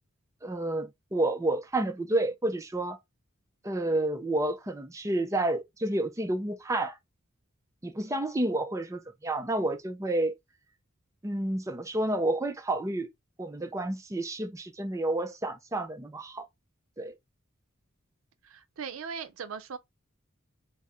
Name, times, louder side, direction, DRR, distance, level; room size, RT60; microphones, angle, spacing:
voice 1, 0.4-3.0 3.6-7.0 7.8-10.4 11.2-13.1 13.4-16.5 17.0-17.1, right 1 dB, 15° right, 0.5 m, -30 dB
voice 2, 18.4-19.8, right 6 dB, 85° right, 0.5 m, -39 dB
4.1 x 2.0 x 3.6 m
head